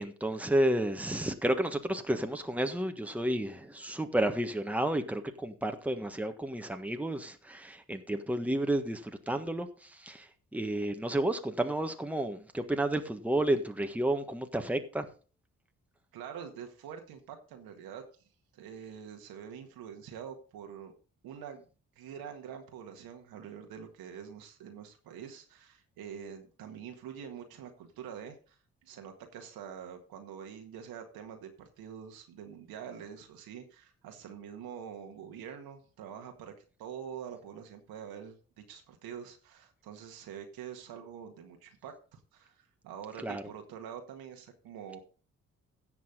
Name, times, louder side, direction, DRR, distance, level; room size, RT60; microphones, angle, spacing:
voice 1, 0.0-10.3 10.5-15.1 43.2-43.4, right 1 dB, 5° right, 6 dB, 1.5 m, -31 dB
voice 2, 16.1-18.0 18.5-20.9 21.2-21.7 22.0-36.5 36.8-45.0, right 8 dB, 70° right, 4 dB, 1.9 m, -45 dB
16.5 x 6.2 x 3.9 m, 0.37 s
hypercardioid pair, 40°, 37 cm